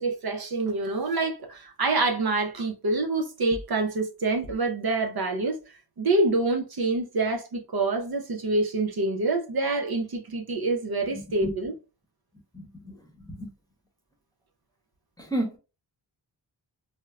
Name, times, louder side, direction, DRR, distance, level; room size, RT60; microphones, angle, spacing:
voice 1, 0.0-5.6 6.0-11.7, right 3 dB, 55° right, 0.7 m, -26 dB
voice 2, 12.5-12.9 13.3-13.5 15.3-15.6, right 1 dB, 10° left, 0.9 m, -30 dB
4.4 x 2.1 x 2.3 m
wide cardioid pair, 75°, 45 cm